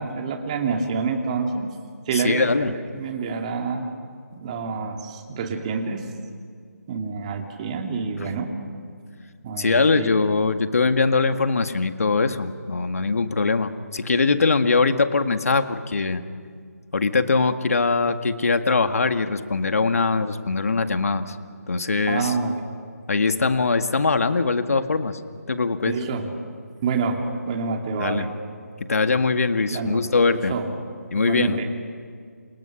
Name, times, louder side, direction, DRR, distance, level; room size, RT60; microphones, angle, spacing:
voice 1, 0.0-1.7 2.1-3.9 4.3-6.0 6.9-8.5 9.4-10.1 22.1-22.6 25.9-26.3 26.8-27.2 27.5-28.3 29.7-30.1 30.5-30.7 31.1-31.7, right 5 dB, 25° right, 3 dB, 2.3 m, -27 dB
voice 2, 2.1-2.7 8.2-8.3 9.6-16.2 16.9-21.4 21.7-22.3 23.1-25.2 25.5-25.9 28.0-28.3 28.9-30.5 31.1-31.6, left 4 dB, 60° left, 8 dB, 1.8 m, -22 dB
29.0 x 28.5 x 5.9 m, 2.1 s
figure-of-eight pair, 155°, 9 cm